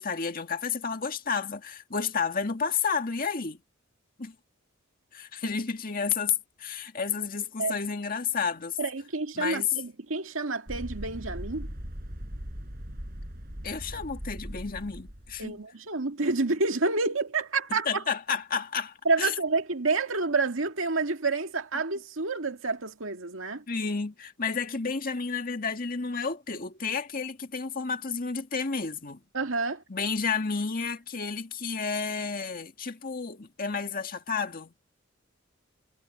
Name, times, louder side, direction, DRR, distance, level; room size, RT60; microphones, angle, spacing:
voice 1, 0.0-3.6 4.2-4.4 5.1-8.8 9.4-9.7 13.6-15.6 17.9-19.3 23.7-29.2 29.9-34.7, left 5 dB, 45° left, 1.9 m, -31 dB
voice 2, 8.8-11.7 15.4-18.0 19.1-23.6 29.3-29.8, right 3 dB, 80° right, 1.9 m, -29 dB
sound 1, 10.7-15.5, equal, 50° right, 5.8 m, -39 dB
head